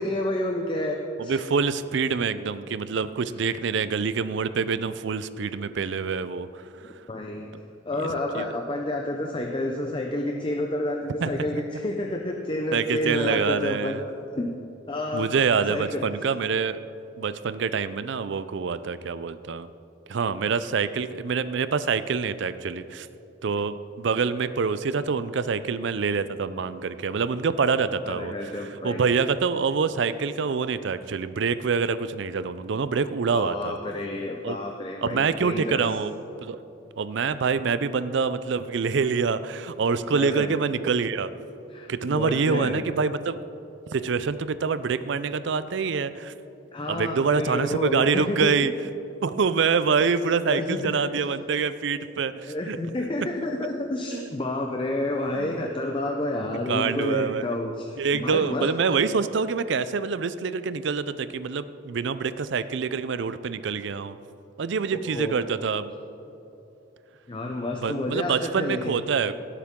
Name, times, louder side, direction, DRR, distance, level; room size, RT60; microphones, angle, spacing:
voice 1, 0.0-1.4 7.1-7.5 7.9-14.0 14.3-14.5 14.9-15.3 15.7-16.0 28.0-29.1 33.3-35.9 40.1-40.6 41.7-42.7 46.7-48.5 50.5-51.0 52.4-58.7 64.9-65.4 67.3-69.0, left 1 dB, 25° left, 2 dB, 0.6 m, -29 dB
voice 2, 1.2-6.6 8.3-8.5 11.2-11.3 12.7-14.0 15.1-16.8 17.2-19.7 20.1-23.1 23.4-33.8 34.4-34.6 35.0-36.1 36.4-36.6 37.0-41.3 41.9-43.4 43.9-46.3 46.9-48.7 49.2-52.8 54.1-54.3 55.4-55.6 56.7-57.6 58.0-64.1 64.6-65.9 67.8-69.3, right 5 dB, 60° right, 13 dB, 0.4 m, -26 dB
17.5 x 8.3 x 3.7 m, 2.9 s
head